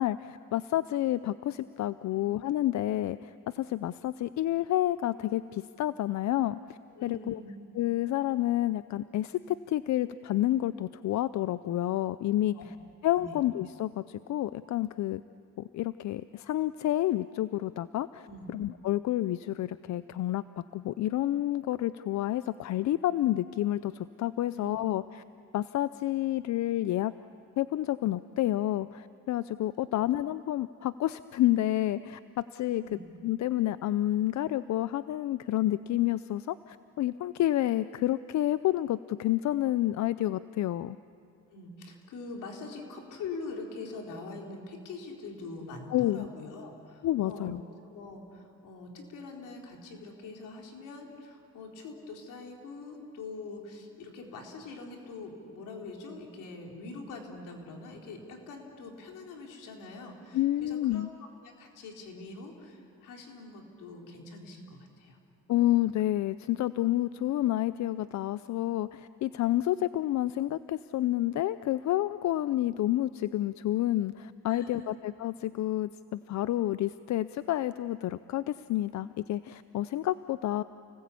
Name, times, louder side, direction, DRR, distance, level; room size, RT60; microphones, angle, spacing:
voice 1, 0.0-7.4 7.7-12.6 13.0-15.2 15.6-25.2 25.5-27.1 27.6-41.0 45.9-46.3 47.0-47.6 60.3-61.1 65.5-80.6, left 14 dB, 65° left, 15 dB, 0.6 m, -29 dB
voice 2, 7.0-7.5 12.6-12.7 13.1-13.4 18.3-18.5 24.5-24.8 32.7-33.0 41.5-47.5 47.8-61.1 61.4-65.2 74.5-74.9, left 3 dB, 85° left, 1 dB, 4.0 m, -44 dB
29.5 x 19.5 x 8.5 m, 2.5 s
cardioid pair, 90°, 30 cm